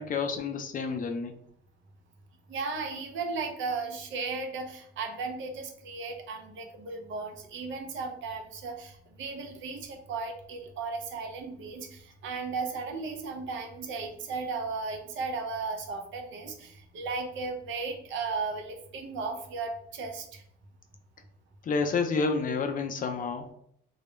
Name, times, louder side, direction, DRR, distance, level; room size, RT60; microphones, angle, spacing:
voice 1, 0.0-1.3 21.6-23.5, left 4 dB, 45° left, 6 dB, 0.4 m, -29 dB
voice 2, 2.5-20.4, right 4 dB, 75° right, 4 dB, 0.6 m, -35 dB
2.2 x 2.0 x 3.0 m, 0.71 s
cardioid pair, 90°, 20 cm